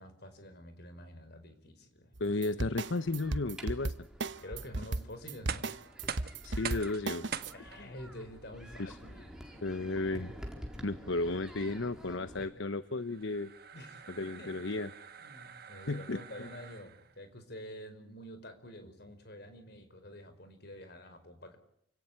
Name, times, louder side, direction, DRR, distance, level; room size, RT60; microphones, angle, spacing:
voice 1, 0.0-2.1 4.4-5.7 7.5-9.4 12.3-12.5 13.7-14.5 15.2-21.6, equal, 55° left, 9 dB, 5.0 m, -48 dB
sound 1, 2.1-7.5, right 2 dB, 70° right, 1.1 m, -35 dB
voice 2, 2.2-3.9 6.4-7.4 7.8-7.9 8.8-9.0 9.6-10.3 10.8-13.5 14.2-14.9 15.9-16.5, left 2 dB, 75° left, 13 dB, 1.0 m, -34 dB
sound 2, 3.0-12.5, equal, 5° right, 4.0 m, -49 dB
sound 3, 5.3-17.2, right 7 dB, 50° right, 1.7 m, -46 dB
29.0 x 18.0 x 9.6 m, 0.72 s
head